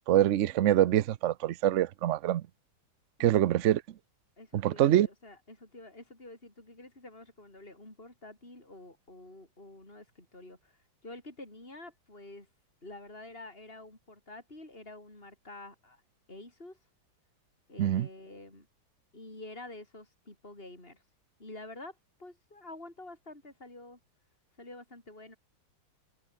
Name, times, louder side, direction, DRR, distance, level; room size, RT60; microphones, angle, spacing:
voice 1, 0.1-2.4 3.2-3.8 4.5-5.1 17.8-18.1, right 12 dB, 70° right, 0.7 m, -25 dB
voice 2, 4.4-12.5 12.8-16.0 16.3-16.8 17.7-18.7 19.1-21.0 21.4-24.0 24.6-25.4, left 2 dB, 30° left, 6.9 m, -48 dB
omnidirectional pair, 2.1 m